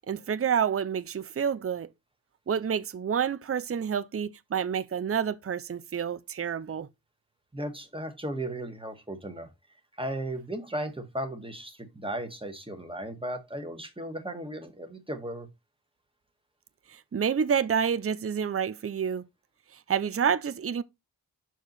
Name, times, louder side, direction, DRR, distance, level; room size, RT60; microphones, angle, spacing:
voice 1, 0.1-1.9 2.5-6.9 16.9-19.2 19.9-20.8, right 7 dB, 40° right, 0.5 m, -28 dB
voice 2, 7.5-9.5 10.0-15.5, right 1 dB, 15° right, 1.5 m, -36 dB
6.6 x 4.6 x 3.9 m
wide cardioid pair, 75°, 38 cm